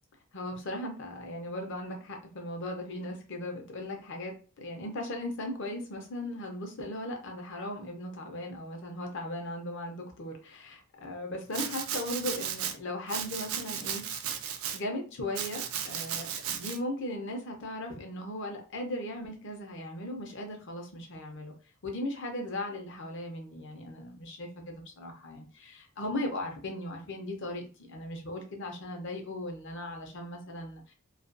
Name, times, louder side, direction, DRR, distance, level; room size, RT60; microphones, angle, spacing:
voice 1, 0.3-14.0 14.7-21.5 21.8-30.9, left 1 dB, 55° left, 2 dB, 0.6 m, -38 dB
Domestic sounds home sounds, 11.5-12.7 13.1-14.8 15.4-16.8, right 9 dB, 65° right, 0.3 m, -35 dB
2.4 x 2.2 x 2.5 m, 0.37 s
head